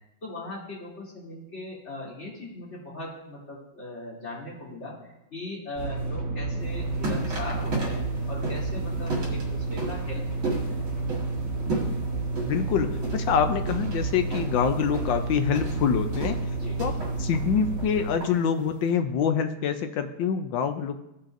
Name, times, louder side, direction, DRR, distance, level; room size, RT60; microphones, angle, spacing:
voice 1, 0.2-4.9 5.3-8.0 8.3-10.8 16.5-16.8, left 1 dB, 30° left, -7 dB, 3.1 m, -39 dB
sound 1, 5.7-18.1, right 3 dB, 20° right, 0.4 m, -30 dB
sound 2, 6.6-18.9, right 2 dB, 70° right, 2.6 m, -36 dB
voice 2, 12.4-16.4 16.8-16.9 17.2-21.0, left 7 dB, 70° left, 8 dB, 1.2 m, -25 dB
16.5 x 5.7 x 2.6 m, 0.88 s
omnidirectional pair, 2.3 m